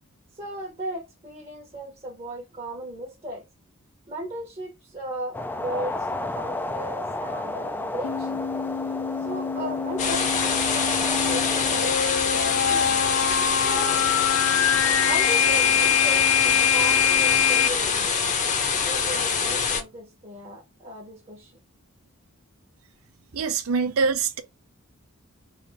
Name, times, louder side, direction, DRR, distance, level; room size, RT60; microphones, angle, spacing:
voice 1, 0.3-3.4 4.1-8.4 9.2-13.1 13.6-14.1 14.8-18.3 18.8-21.5, right 1 dB, 30° right, 0.8 m, -36 dB
sound 1, 5.3-11.9, left 2 dB, 10° left, 0.3 m, -32 dB
sound 2, 8.0-17.7, left 8 dB, 80° left, 0.4 m, -24 dB
sound 3, 10.0-19.8, left 6 dB, 35° left, 0.7 m, -25 dB
voice 2, 23.3-24.4, right 5 dB, 75° right, 0.5 m, -24 dB
3.3 x 2.6 x 3.9 m
head